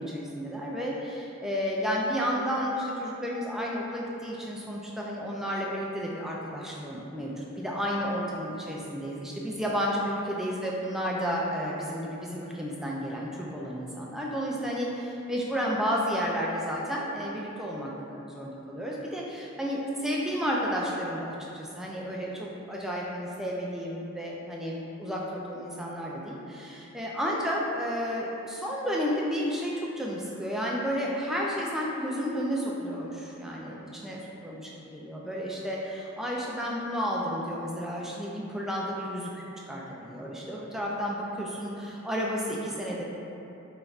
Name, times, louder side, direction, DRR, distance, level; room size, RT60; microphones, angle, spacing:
voice 1, 0.0-34.6 34.9-43.1, equal, ahead, -4 dB, 0.3 m, -32 dB
4.0 x 3.2 x 2.4 m, 2.9 s
head